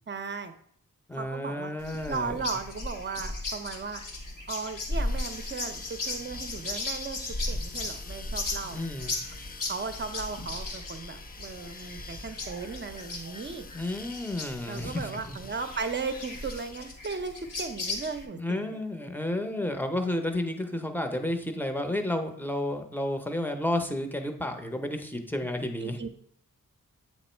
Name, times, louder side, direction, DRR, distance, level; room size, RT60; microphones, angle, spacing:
voice 1, 0.1-0.5 1.1-1.7 2.1-4.0 4.5-7.2 7.5-8.8 9.7-13.7 14.7-18.8 25.8-26.1, right 4 dB, 30° right, 8 dB, 0.7 m, -36 dB
voice 2, 1.1-2.4 8.7-9.2 13.7-15.4 18.3-26.0, left 1 dB, 5° left, 5 dB, 0.8 m, -31 dB
sound 1, 1.8-18.3, left 2 dB, 65° left, 1.5 m, -36 dB
sound 2, 4.9-16.9, left 5 dB, 25° left, 0.4 m, -48 dB
7.6 x 3.0 x 4.4 m, 0.63 s
cardioid pair, 65°, 34 cm